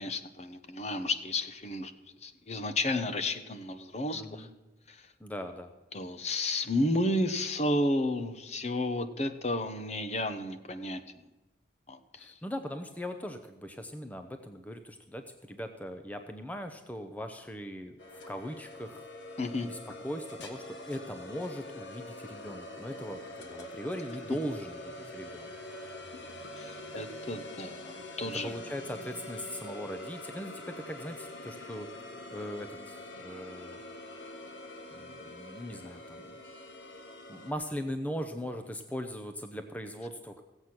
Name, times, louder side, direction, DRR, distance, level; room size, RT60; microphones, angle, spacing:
voice 1, 0.0-1.9 2.2-4.5 4.9-5.1 5.9-11.0 11.9-12.4 19.4-19.7 26.6-28.5, left 1 dB, 35° left, 9 dB, 0.8 m, -32 dB
voice 2, 4.1-4.5 5.2-5.7 12.2-19.1 19.6-25.6 28.3-32.0 32.3-33.8 34.9-36.4 37.3-40.4, equal, 10° left, 7 dB, 0.6 m, -40 dB
sound 1, 18.0-37.5, left 1 dB, 80° left, 1.5 m, -44 dB
16.5 x 8.0 x 5.9 m, 1.1 s
head